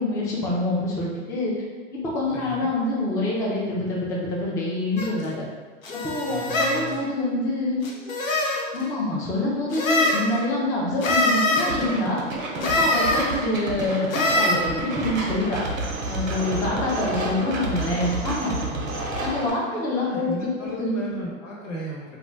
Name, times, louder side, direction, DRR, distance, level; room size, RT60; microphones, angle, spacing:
voice 1, 0.0-1.5 1.9-5.4 5.9-7.9 8.7-12.2 12.6-15.6 16.1-18.6 19.2-20.3 20.6-21.0, left 2 dB, 10° left, -5 dB, 0.3 m, -26 dB
voice 2, 2.3-2.7 6.3-7.0 16.4-16.8 18.7-19.0 19.7-22.2, equal, 70° left, -4 dB, 1.1 m, -35 dB
sound 1, 5.0-5.1 5.8-6.8 7.8-8.6 9.7-10.2 11.0-11.7 12.6-13.2 14.1-14.5, left 1 dB, 90° left, 0.6 m, -23 dB
sound 2, 11.6-19.5, right 2 dB, 85° right, 0.7 m, -30 dB
2.4 x 2.2 x 3.2 m, 1.4 s
hypercardioid pair, 95°, 39 cm